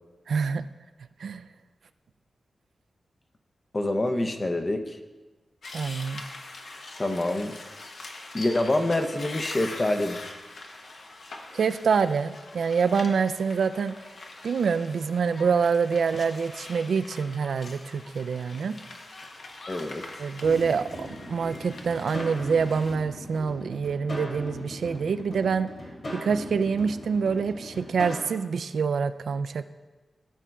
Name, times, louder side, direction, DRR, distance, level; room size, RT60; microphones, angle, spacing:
voice 1, 0.3-0.6 1.2-1.4 5.7-6.2 11.5-14.0 14.4-18.7 20.2-25.7 26.1-29.6, right 5 dB, 85° right, 12 dB, 0.3 m, -26 dB
voice 2, 3.7-5.0 7.0-7.6 8.3-10.2 19.7-20.3, left 1 dB, 25° left, 6 dB, 0.6 m, -26 dB
sound 1, 5.6-23.0, left 2 dB, 60° left, 0.9 m, -43 dB
sound 2, 20.4-28.3, equal, 45° left, 2.5 m, -39 dB
14.5 x 7.4 x 2.3 m, 1.3 s
wide cardioid pair, 180°, 0 cm